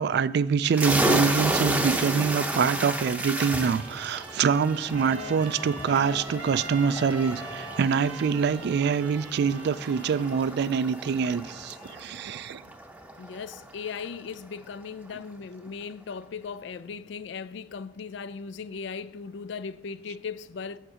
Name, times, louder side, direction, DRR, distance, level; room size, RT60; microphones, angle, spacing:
voice 1, 0.0-12.6, right 6 dB, 60° right, 0.3 m, -25 dB
sound 1, 0.7-14.1, right 1 dB, 10° right, 0.7 m, -32 dB
Trumpet, 3.0-10.6, right 4 dB, 80° right, 0.9 m, -43 dB
sound 2, 4.8-12.1, left 3 dB, 40° left, 1.6 m, -45 dB
voice 2, 13.2-20.8, left 5 dB, 65° left, 0.4 m, -38 dB
7.8 x 7.2 x 4.9 m
head